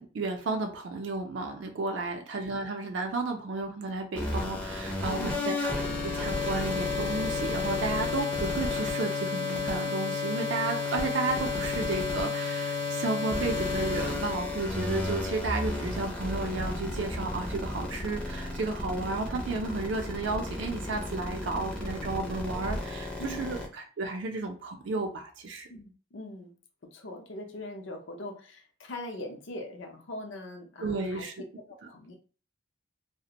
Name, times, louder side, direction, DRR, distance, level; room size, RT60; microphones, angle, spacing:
voice 1, 0.0-25.7 30.8-31.3, right 3 dB, 60° right, 3 dB, 0.4 m, -33 dB
sound 1, 4.2-23.7, left 3 dB, 5° left, 0.4 m, -32 dB
voice 2, 5.0-5.6 23.2-23.6 25.7-26.6 26.9-31.2 31.7-32.1, left 1 dB, 65° left, 3 dB, 0.6 m, -42 dB
2.4 x 2.1 x 2.8 m, 0.38 s
head